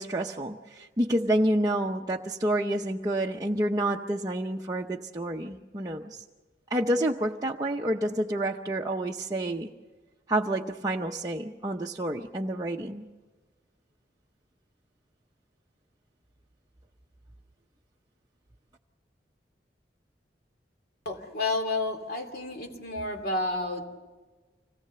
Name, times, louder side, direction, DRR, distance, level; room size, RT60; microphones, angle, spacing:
voice 1, 0.0-6.2 6.7-9.7 10.3-13.0, right 1 dB, 20° right, 0 dB, 0.7 m, -29 dB
voice 2, 21.0-23.9, left 2 dB, 55° left, 3 dB, 2.8 m, -30 dB
25.5 x 19.0 x 6.7 m, 1.3 s
head